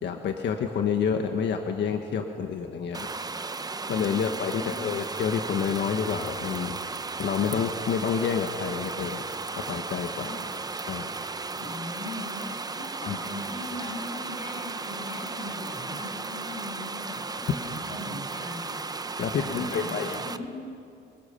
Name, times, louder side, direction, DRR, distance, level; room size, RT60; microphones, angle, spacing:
voice 1, 0.0-3.1 3.9-6.8 7.2-9.2 9.7-10.3 10.9-11.1 13.1-13.2 19.2-20.2, left 7 dB, 65° left, 4 dB, 1.6 m, -28 dB
sound 1, 2.9-20.4, right 3 dB, 20° right, 0.8 m, -35 dB
voice 2, 4.6-4.9 10.2-10.5 11.6-18.7 19.4-20.6, left 2 dB, 35° left, -2 dB, 7.5 m, -39 dB
26.5 x 23.5 x 6.9 m, 2.6 s
cardioid pair, 120°, 20 cm